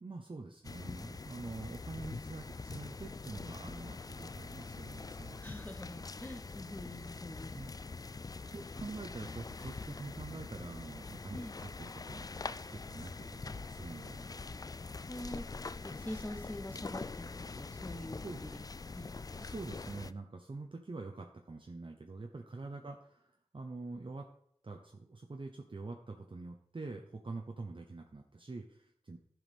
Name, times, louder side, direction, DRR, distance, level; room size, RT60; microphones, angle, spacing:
voice 1, 0.0-5.4 7.5-7.7 8.5-12.3 12.7-14.3 18.2-18.4 19.4-24.3 24.6-29.2, right 3 dB, 45° right, 2 dB, 0.9 m, -45 dB
sound 1, 0.6-20.1, left 4 dB, 30° left, 0.3 m, -44 dB
voice 2, 5.4-7.5 11.3-11.6 15.1-15.4 15.8-19.1, left 1 dB, 15° left, 6 dB, 1.2 m, -45 dB
11.0 x 4.8 x 5.3 m, 0.68 s
cardioid pair, 50°, 12 cm